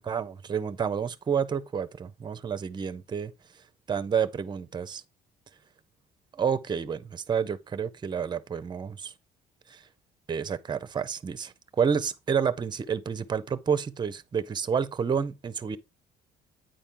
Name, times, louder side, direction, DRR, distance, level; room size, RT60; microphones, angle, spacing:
voice 1, 0.0-3.3 3.9-5.0 6.4-9.1 9.7-9.8 10.3-15.8, right 7 dB, 25° right, 0.6 m, -29 dB
9.0 x 4.3 x 3.7 m
cardioid pair, 110°, 17 cm